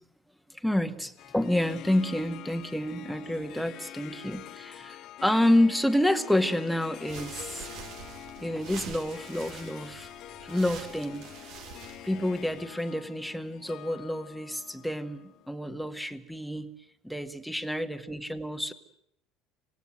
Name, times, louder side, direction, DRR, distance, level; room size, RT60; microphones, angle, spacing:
voice 1, 0.5-7.7 8.4-10.1 10.4-11.2 12.0-16.7 17.0-18.7, left 1 dB, ahead, 7 dB, 1.9 m, -29 dB
Harp, 1.2-15.7, left 13 dB, 45° left, 1.0 m, -45 dB
sound 1, 7.0-12.7, right 7 dB, 50° right, 2.0 m, -45 dB
25.5 x 19.0 x 9.2 m, 0.75 s
figure-of-eight pair, 65°, 0 cm